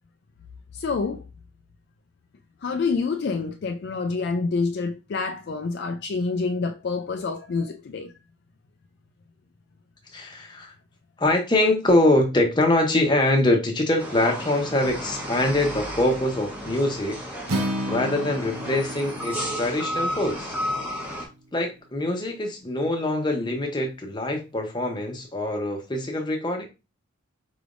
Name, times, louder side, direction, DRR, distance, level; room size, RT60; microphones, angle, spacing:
voice 1, 0.7-1.2 2.6-8.1, left 4 dB, 50° left, 0.3 m, -27 dB
voice 2, 10.1-10.7 11.2-17.2 17.9-20.5 21.5-26.6, left 1 dB, 20° left, 0.8 m, -24 dB
sound 1, 14.0-21.3, equal, 10° right, 0.9 m, -33 dB
Acoustic guitar, 17.5-21.7, equal, 90° right, 0.9 m, -33 dB
4.7 x 3.3 x 2.5 m
head